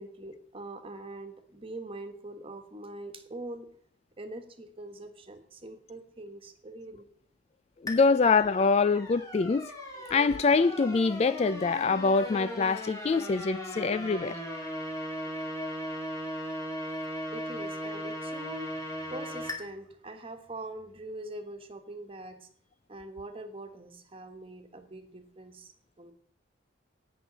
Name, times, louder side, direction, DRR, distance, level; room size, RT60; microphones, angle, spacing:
voice 1, 0.0-3.7 4.2-7.1 17.3-22.5 22.9-26.1, right 1 dB, 30° right, 1.5 m, -43 dB
voice 2, 7.8-9.7 10.1-14.4 15.6-15.8, left 4 dB, 35° left, 0.3 m, -25 dB
sound 1, 7.9-19.6, equal, 20° left, 2.4 m, -38 dB
18.0 x 6.3 x 4.0 m
head